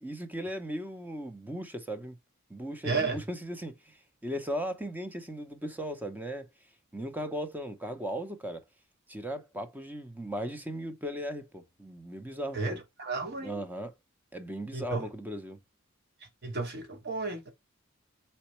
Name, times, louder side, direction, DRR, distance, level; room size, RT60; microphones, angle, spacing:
voice 1, 0.0-2.2 2.5-3.9 4.2-6.5 6.9-8.6 9.1-12.8 13.4-13.9 14.3-15.6, equal, 10° right, 0.7 m, -37 dB
voice 2, 2.8-3.2 12.5-13.6 14.7-15.0 16.4-17.5, right 4 dB, 55° right, 1.2 m, -33 dB
4.3 x 4.0 x 3.1 m
head